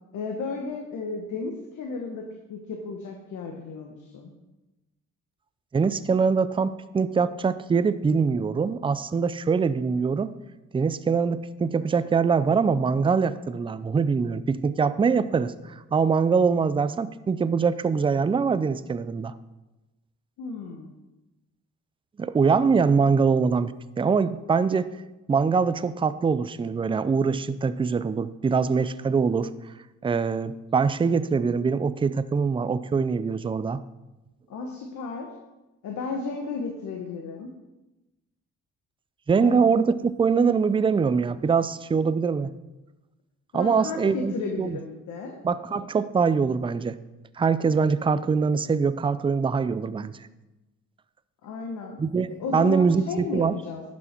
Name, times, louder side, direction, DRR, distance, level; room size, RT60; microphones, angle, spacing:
voice 1, 0.1-4.3 20.4-20.9 34.5-35.3 35.8-37.5 39.4-39.6 43.5-45.3 51.4-52.0 52.4-53.8, left 4 dB, 75° left, 2 dB, 1.2 m, -34 dB
voice 2, 5.7-10.3 10.7-19.3 22.2-24.9 25.3-29.5 30.0-33.8 39.3-42.5 43.5-44.8 45.4-47.0 47.4-50.1 52.0-53.6, right 5 dB, 15° right, 14 dB, 0.4 m, -23 dB
11.0 x 6.3 x 4.5 m, 1.0 s
cardioid pair, 90°, 30 cm